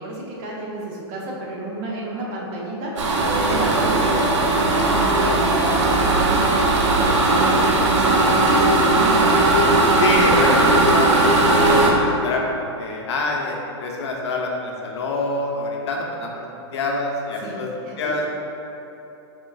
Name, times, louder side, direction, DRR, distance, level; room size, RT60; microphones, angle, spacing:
voice 1, 0.0-9.3 17.4-18.3, right 2 dB, 30° right, -3 dB, 0.6 m, -31 dB
sound 1, 3.0-11.9, right 2 dB, 90° right, 0.6 m, -18 dB
Brass instrument, 3.2-6.0 7.5-8.1, right 1 dB, 55° right, 1.1 m, -32 dB
voice 2, 10.0-18.3, left 3 dB, 70° left, -1 dB, 0.7 m, -26 dB
4.3 x 3.6 x 2.3 m, 2.9 s
hypercardioid pair, 160°, 15 cm